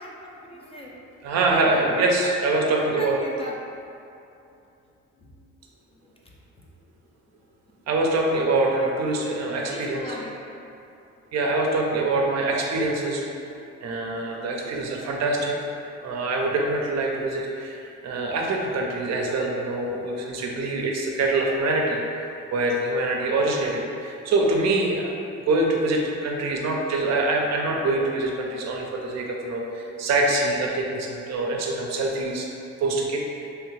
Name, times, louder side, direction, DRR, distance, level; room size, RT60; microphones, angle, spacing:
voice 1, 0.0-1.3 2.7-3.6 5.2-5.5 5.9-6.3 9.6-10.3, equal, 20° left, -3 dB, 0.4 m, -39 dB
voice 2, 1.2-3.2 7.9-10.0 11.3-13.2 13.8-15.6 16.0-22.2 22.5-25.1 25.5-32.5 32.8-33.5, right 2 dB, 60° right, 0 dB, 0.5 m, -24 dB
3.1 x 2.3 x 3.1 m, 2.7 s
cardioid pair, 90°, 30 cm